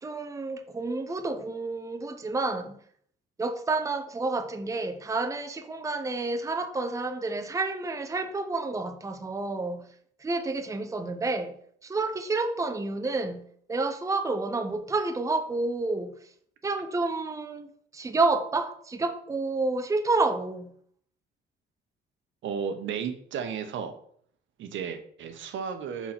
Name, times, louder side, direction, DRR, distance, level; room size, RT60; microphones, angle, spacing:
voice 1, 0.0-2.8 3.4-9.8 10.2-11.5 11.8-16.1 16.6-17.7 17.9-20.7, right 3 dB, 15° right, 0.6 m, -29 dB
voice 2, 22.4-23.9 24.6-26.1, right 7 dB, 75° right, 0.9 m, -33 dB
4.6 x 4.3 x 5.9 m
cardioid pair, 90°, 20 cm